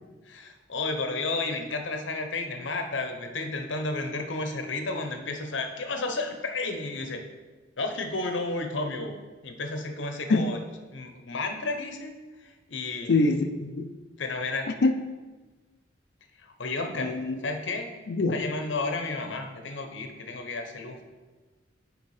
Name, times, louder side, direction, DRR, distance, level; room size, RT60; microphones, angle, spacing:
voice 1, 0.3-7.2 7.8-10.6 10.9-12.1 12.4-13.1 14.2-14.7 16.4-17.2 17.4-17.9 18.3-21.0, left 3 dB, 80° left, 5 dB, 0.8 m, -32 dB
voice 2, 13.1-13.9 14.8-14.9 17.0-17.4 18.1-18.4, left 3 dB, 60° left, 8 dB, 0.4 m, -24 dB
6.9 x 4.5 x 4.8 m, 1.3 s
head